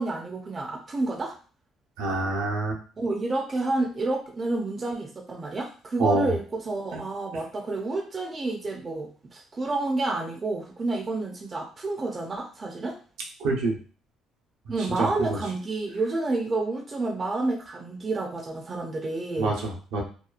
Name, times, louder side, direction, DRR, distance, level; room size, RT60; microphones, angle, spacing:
voice 1, 0.0-1.4 3.0-13.0 14.7-19.5, right 2 dB, 30° right, 0 dB, 0.5 m, -29 dB
voice 2, 2.0-2.8 6.0-6.3 13.4-13.8 15.0-15.3 19.4-20.0, right 3 dB, 90° right, -1 dB, 0.8 m, -26 dB
2.8 x 2.3 x 2.3 m, 0.38 s
cardioid pair, 120°, 0 cm